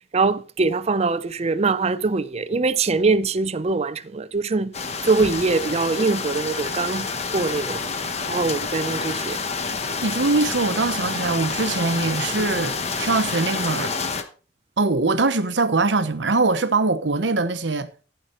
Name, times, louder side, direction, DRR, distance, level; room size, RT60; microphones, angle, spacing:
voice 1, 0.1-4.7 5.1-7.8 8.3-9.4, right 3 dB, 35° right, 0.5 m, -23 dB
sound 1, 4.7-14.2, left 4 dB, 35° left, 1.1 m, -28 dB
voice 2, 10.0-13.9 14.8-17.9, right 3 dB, 85° right, 1.0 m, -22 dB
14.5 x 5.8 x 4.4 m
head